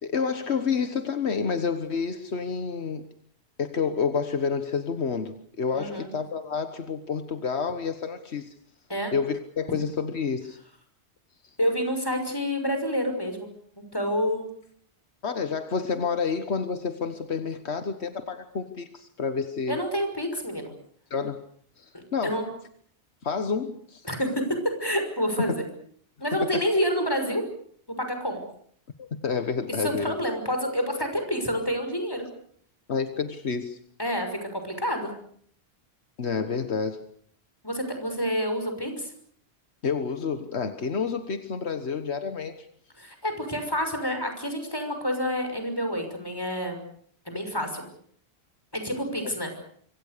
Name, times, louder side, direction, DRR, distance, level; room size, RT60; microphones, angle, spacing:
voice 1, 0.0-3.0 3.6-8.5 9.1-10.6 15.2-19.8 21.1-21.4 21.8-22.4 23.2-24.0 26.4-26.6 29.0-30.1 32.9-33.8 36.2-37.1 39.8-42.7 49.2-49.3, left 5 dB, 80° left, 9 dB, 1.6 m, -29 dB
voice 2, 5.7-6.1 8.9-9.1 11.6-13.5 13.8-14.5 19.7-20.7 21.9-22.5 24.0-25.6 26.2-27.4 27.9-28.4 29.8-32.2 34.0-35.1 37.6-39.1 43.0-46.8 47.3-47.8 48.7-49.5, equal, 20° left, 6 dB, 5.9 m, -28 dB
25.5 x 24.5 x 6.8 m, 0.62 s
omnidirectional pair, 1.1 m